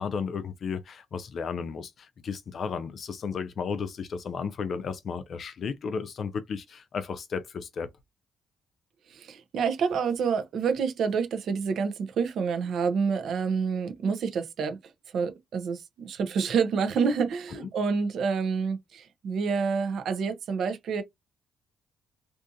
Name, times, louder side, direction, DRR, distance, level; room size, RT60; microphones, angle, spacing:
voice 1, 0.0-7.9 17.6-17.7, left 6 dB, 55° left, 0.4 m, -34 dB
voice 2, 9.1-14.8 15.1-21.0, right 5 dB, 65° right, 0.6 m, -28 dB
2.6 x 2.4 x 2.6 m
cardioid pair, 90°, 0 cm